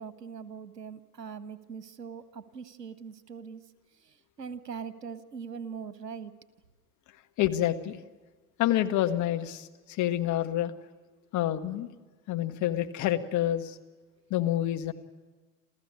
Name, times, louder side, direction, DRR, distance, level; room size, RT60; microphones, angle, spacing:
voice 1, 0.0-3.6 3.9-6.3, right 6 dB, 85° right, 14 dB, 1.5 m, -41 dB
voice 2, 7.4-8.0 8.6-10.7 11.3-11.9 12.3-13.8 14.3-14.9, left 12 dB, 35° left, 7 dB, 1.7 m, -28 dB
28.5 x 15.0 x 9.8 m, 1.3 s
figure-of-eight pair, 85°, 47 cm